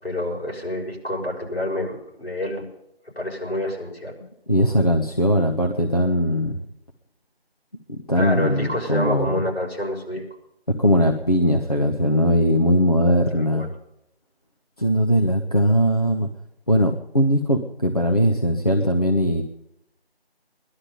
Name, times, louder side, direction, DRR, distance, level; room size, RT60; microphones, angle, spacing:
voice 1, 0.0-2.6 3.1-4.1 8.1-10.2 13.3-13.7, left 1 dB, 65° left, -2 dB, 6.3 m, -28 dB
voice 2, 4.5-6.6 8.1-9.4 10.8-13.7 14.8-16.3 16.7-19.4, equal, 35° left, 1 dB, 1.1 m, -20 dB
18.5 x 12.0 x 5.4 m, 0.84 s
figure-of-eight pair, 175°, 31 cm